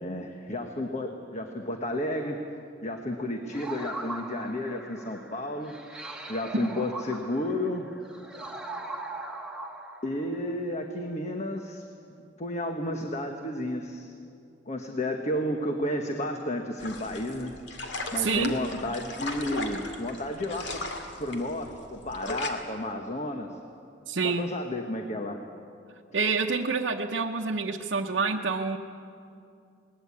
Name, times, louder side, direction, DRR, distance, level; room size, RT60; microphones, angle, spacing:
voice 1, 0.0-2.4 2.8-5.8 6.3-7.9 10.0-11.9 12.4-14.1 14.7-17.6 18.1-20.8 21.2-23.5 24.2-25.4, left 1 dB, 40° left, 4 dB, 1.3 m, -32 dB
sound 1, 3.5-10.4, right 2 dB, 5° right, 1.8 m, -40 dB
sound 2, 16.8-22.5, left 2 dB, 65° left, 2.3 m, -37 dB
voice 2, 18.2-18.5 24.1-24.5 26.1-28.8, right 4 dB, 70° right, 0 dB, 0.9 m, -27 dB
21.0 x 19.0 x 8.6 m, 2.5 s
head